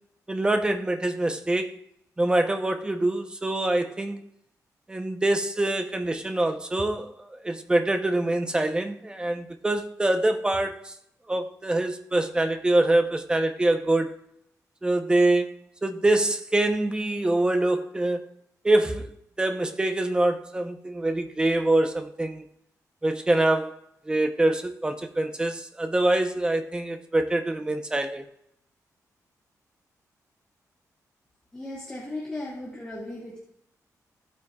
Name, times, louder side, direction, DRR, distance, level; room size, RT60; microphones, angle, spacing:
voice 1, 0.3-1.7 2.2-4.2 4.9-10.9 11.3-14.1 14.8-18.3 18.6-19.1 19.4-22.4 23.0-23.8 24.1-28.3, right 2 dB, 15° right, 0.8 m, -25 dB
voice 2, 31.5-33.4, left 2 dB, 10° left, 2.2 m, -36 dB
15.5 x 8.9 x 2.4 m
wide cardioid pair, 145°, 6 cm